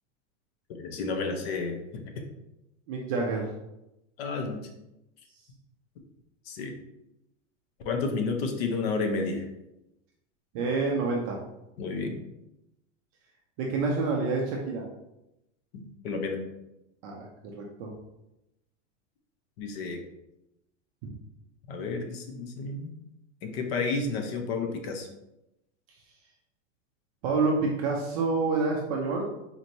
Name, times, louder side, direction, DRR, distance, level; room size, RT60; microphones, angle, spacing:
voice 1, 0.7-2.2 4.2-4.6 6.5-6.7 7.8-9.4 11.8-12.2 16.0-16.4 19.6-20.0 21.7-22.9 23.4-25.1, left 4 dB, 55° left, 4 dB, 0.7 m, -31 dB
voice 2, 2.9-3.5 10.5-11.4 13.6-14.8 17.0-17.3 17.5-17.9 21.0-21.1 27.2-29.2, right 3 dB, 30° right, -1 dB, 0.4 m, -28 dB
4.3 x 2.9 x 2.6 m, 0.90 s
supercardioid pair, 150°, 38 cm